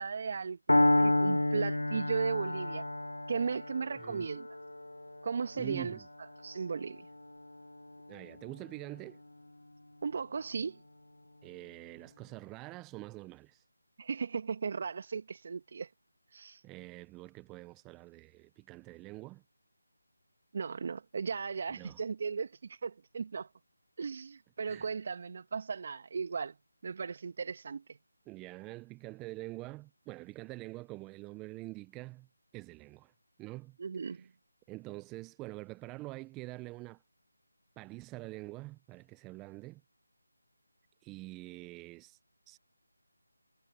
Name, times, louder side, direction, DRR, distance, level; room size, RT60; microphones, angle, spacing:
voice 1, 0.0-2.8 3.3-4.5 5.2-6.0 6.4-7.1 10.0-10.8 14.0-15.9 16.3-16.6 20.5-23.5 24.0-26.6 26.8-27.8 33.8-34.3, right 5 dB, 40° right, 1.8 m, -36 dB
Piano, 0.7-8.6, left 1 dB, 80° left, 0.4 m, -31 dB
voice 2, 4.0-4.3 5.5-6.1 8.1-9.2 11.4-13.6 16.6-19.4 21.7-22.0 24.6-24.9 28.3-32.3 32.5-33.1 33.4-33.8 34.0-34.3 34.7-37.0 37.8-39.8 41.0-42.2 42.5-42.6, right 21 dB, 10° right, 0.9 m, -45 dB
figure-of-eight pair, 160°, 0 cm